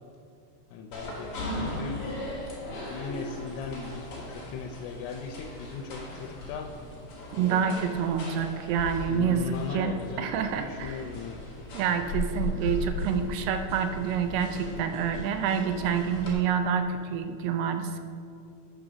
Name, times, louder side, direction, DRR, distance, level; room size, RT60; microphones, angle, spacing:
voice 1, 0.7-2.0 2.7-6.7 9.1-11.4, left 5 dB, 85° left, 2 dB, 2.6 m, -38 dB
sound 1, 0.9-16.3, left 1 dB, 55° left, 1.7 m, -37 dB
voice 2, 7.3-11.0 11.7-18.0, right 7 dB, 85° right, 8 dB, 2.6 m, -28 dB
9.8 x 3.9 x 6.1 m, 2.5 s
omnidirectional pair, 4.6 m